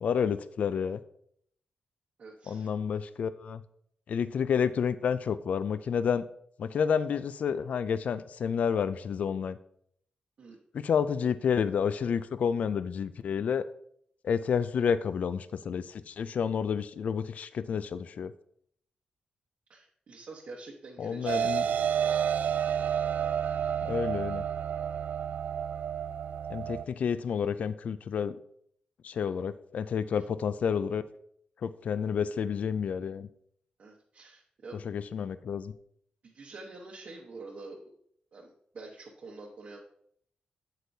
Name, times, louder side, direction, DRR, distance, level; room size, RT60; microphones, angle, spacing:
voice 1, 0.0-1.0 2.5-3.6 4.1-6.2 6.6-9.6 10.7-13.7 14.2-18.3 21.0-21.7 23.8-24.4 26.5-28.4 29.0-31.0 31.6-33.3 34.8-35.7, left 7 dB, 65° left, 14 dB, 0.4 m, -30 dB
voice 2, 2.2-2.7 10.4-10.6 19.7-22.0 22.6-22.7 30.1-30.2 33.8-34.8 36.2-37.8 38.3-39.8, right 3 dB, 55° right, -2 dB, 1.0 m, -47 dB
sound 1, 21.3-26.8, right 8 dB, 80° right, 0.4 m, -30 dB
8.3 x 7.9 x 2.7 m, 0.68 s
wide cardioid pair, 155°, 3 cm